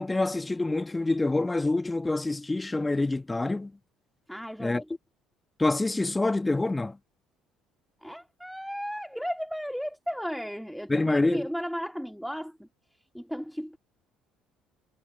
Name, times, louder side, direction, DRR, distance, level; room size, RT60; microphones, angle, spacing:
voice 1, 0.0-3.7 4.6-4.8 5.6-7.0 10.9-11.4, left 2 dB, 15° left, 1.5 m, -26 dB
voice 2, 4.3-4.9 8.0-12.7 13.1-13.8, equal, ahead, 2.4 m, -34 dB
hypercardioid pair, 55°, 0 cm